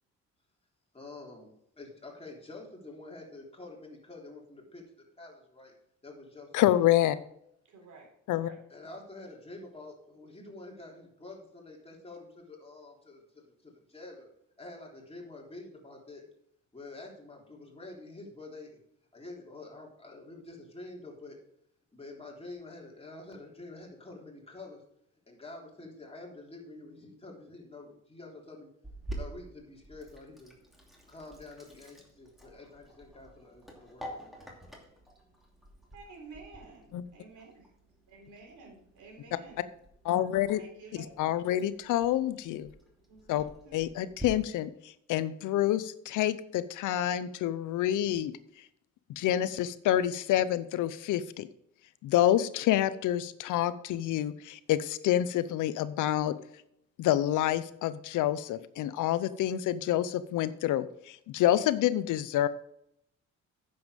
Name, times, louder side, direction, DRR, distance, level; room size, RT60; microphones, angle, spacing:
voice 1, 0.9-5.7 6.0-6.9 8.7-14.3 14.6-16.2 16.7-18.8 19.1-21.4 21.9-24.8 25.3-28.7 29.1-30.5 31.1-34.5, left 2 dB, 20° left, -1 dB, 3.4 m, -47 dB
voice 2, 6.5-7.1 8.3-8.5 36.9-37.0 40.0-40.6 41.2-42.7 43.3-43.4 43.7-48.3 49.2-51.5 52.0-56.3 57.0-62.5, left 12 dB, 85° left, 15 dB, 0.7 m, -28 dB
voice 3, 7.7-8.6 35.9-37.6 38.1-39.6 40.5-41.5 43.1-43.8, right 4 dB, 75° right, 0 dB, 4.1 m, -51 dB
Sink (filling or washing), 28.8-44.2, right 1 dB, ahead, 2.7 m, -49 dB
9.5 x 7.2 x 5.1 m, 0.74 s
cardioid pair, 90°, 30 cm